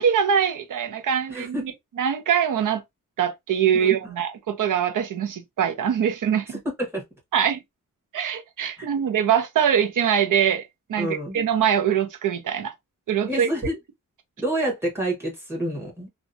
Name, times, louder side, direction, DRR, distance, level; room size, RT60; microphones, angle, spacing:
voice 1, 0.0-1.7 2.0-2.8 3.2-6.5 7.3-7.6 8.1-12.7 13.1-13.5, right 8 dB, 75° right, 0.6 m, -23 dB
voice 2, 1.3-1.6 3.7-3.9 6.8-7.0 8.8-8.9 11.0-11.4 13.3-13.8 14.4-16.1, right 1 dB, 10° right, 1.1 m, -28 dB
2.7 x 2.2 x 2.5 m
wide cardioid pair, 165°, 32 cm